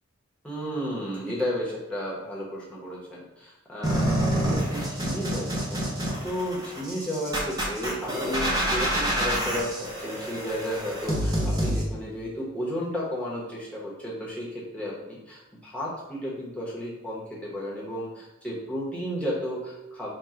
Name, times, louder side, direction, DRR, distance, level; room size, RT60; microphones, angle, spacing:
voice 1, 0.4-20.1, equal, 5° left, -6 dB, 0.9 m, -33 dB
sound 1, 3.8-11.8, right 1 dB, 20° right, 0.7 m, -27 dB
3.6 x 2.3 x 4.3 m, 0.99 s
head